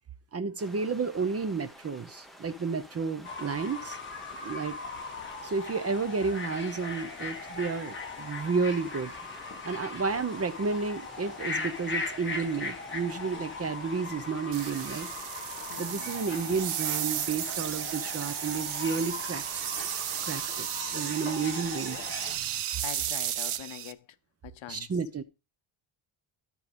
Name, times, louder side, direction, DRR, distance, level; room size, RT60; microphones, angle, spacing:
voice 1, 0.3-4.0 4.4-4.8 5.4-9.1 9.6-15.1 15.8-19.4 20.2-20.7 20.9-22.0 24.7-25.2, right 5 dB, 30° right, 0.7 m, -31 dB
sound 1, 0.6-20.5, equal, ahead, 0.9 m, -52 dB
Fowl / Bird, 3.2-22.4, left 4 dB, 25° left, 1.7 m, -39 dB
sound 2, 14.5-23.9, right 11 dB, 90° right, 0.9 m, -34 dB
voice 2, 15.7-16.1 22.8-24.0 24.4-24.9, left 12 dB, 70° left, 0.7 m, -43 dB
13.0 x 4.8 x 5.1 m
wide cardioid pair, 175°, 49 cm